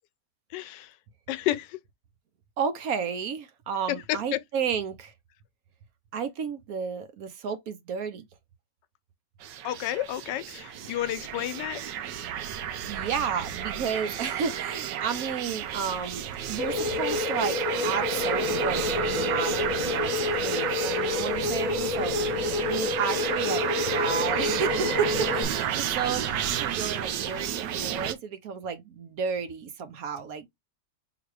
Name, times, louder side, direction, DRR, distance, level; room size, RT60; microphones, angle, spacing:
voice 1, 0.5-0.9 1.3-1.8 4.3-4.4 9.6-11.8 22.6-22.8, left 13 dB, 85° left, 1.2 m, -31 dB
voice 2, 2.6-5.1 6.1-8.3 12.9-17.6 17.8-20.1 20.4-22.2 22.7-26.3 26.6-30.5, right 6 dB, 65° right, 1.1 m, -32 dB
sound 1, 9.4-28.1, right 9 dB, 85° right, 1.4 m, -31 dB
sound 2, 16.6-25.4, left 4 dB, 55° left, 1.1 m, -29 dB
3.9 x 2.8 x 4.7 m
omnidirectional pair, 1.9 m